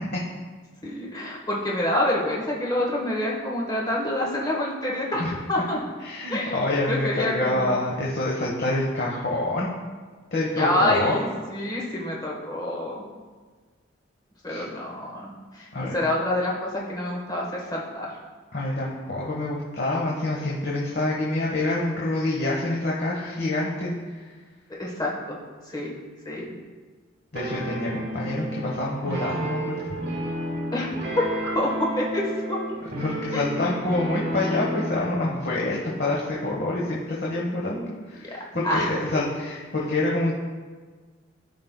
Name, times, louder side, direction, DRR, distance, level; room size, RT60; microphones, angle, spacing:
voice 1, 0.8-5.6 6.3-7.8 10.6-13.0 14.4-18.1 24.7-25.4 25.6-25.9 26.2-26.5 30.7-30.9 31.2-32.6 33.3-33.4 38.3-38.4 38.6-38.9, left 1 dB, 20° left, -3 dB, 1.1 m, -27 dB
voice 2, 6.0-9.7 10.3-11.2 14.5-14.6 15.7-16.0 18.5-24.2 27.3-29.8 33.0-40.3, left 2 dB, 55° left, -4 dB, 1.1 m, -27 dB
sound 1, 27.3-35.1, equal, 50° right, 1.9 m, -31 dB
14.0 x 5.3 x 2.2 m, 1.4 s
head